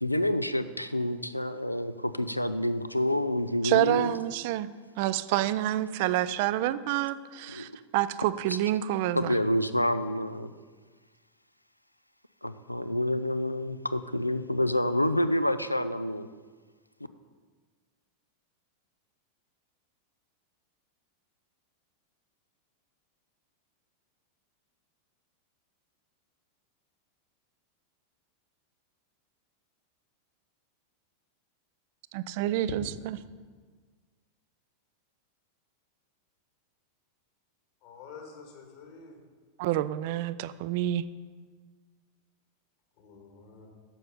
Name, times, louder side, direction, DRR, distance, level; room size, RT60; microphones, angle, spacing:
voice 1, 0.0-4.1 7.5-7.7 8.5-8.6 9.1-10.5 12.4-16.3, left 1 dB, 85° left, 12 dB, 0.4 m, -28 dB
voice 2, 3.6-4.7 5.0-9.3 32.1-33.2 39.6-41.0, right 13 dB, 50° right, 16 dB, 0.3 m, -28 dB
voice 3, 37.8-39.2 43.0-43.7, left 5 dB, 50° left, 2 dB, 1.8 m, -48 dB
9.2 x 6.6 x 5.5 m, 1.5 s
figure-of-eight pair, 90°, 0 cm